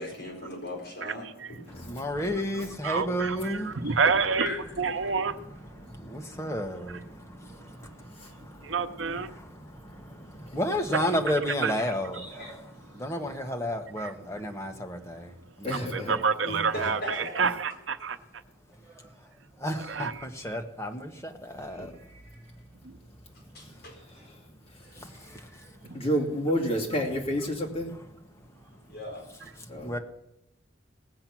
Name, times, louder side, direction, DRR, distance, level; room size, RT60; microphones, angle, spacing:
voice 1, 0.0-1.8 2.2-2.3 3.8-4.7 12.1-12.6 12.9-13.5 16.4-17.4 23.5-24.0 28.9-29.3, equal, 55° left, 4.4 m, -39 dB
voice 2, 1.8-3.8 5.9-8.7 9.3-12.5 12.9-16.2 19.6-21.9 25.3-25.5 29.8-30.0, equal, 15° left, 1.3 m, -32 dB
voice 3, 2.8-5.5 6.9-7.0 7.5-7.6 8.6-9.3 10.9-11.0 11.6-11.9 14.0-14.1 15.7-18.2 19.8-20.3 22.8-23.0 25.9-26.0, right 5 dB, 85° right, 0.9 m, -28 dB
voice 4, 6.1-6.5 7.5-8.0 8.5-8.8 9.9-10.1 18.8-20.0 21.6-22.6 24.1-24.3 24.8-26.1 28.6-29.0, right 2 dB, 5° right, 3.6 m, -60 dB
voice 5, 15.6-16.2 16.5-16.6 21.8-21.9 24.1-24.3 25.9-27.9 29.7-29.9, equal, 30° left, 2.6 m, -29 dB
18.5 x 7.8 x 6.0 m
head